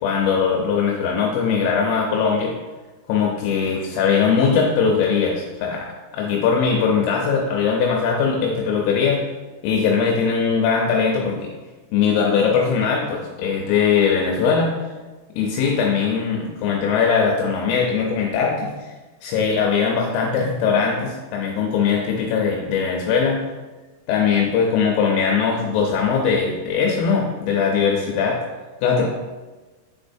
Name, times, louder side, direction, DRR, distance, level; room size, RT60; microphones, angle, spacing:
voice 1, 0.0-2.5 3.1-5.9 6.1-9.2 9.6-11.5 11.9-14.7 15.4-18.9 19.2-23.5 24.1-28.4 28.8-29.1, left 6 dB, 80° left, -1 dB, 3.2 m, -20 dB
9.7 x 4.2 x 2.6 m, 1.2 s
omnidirectional pair, 5.8 m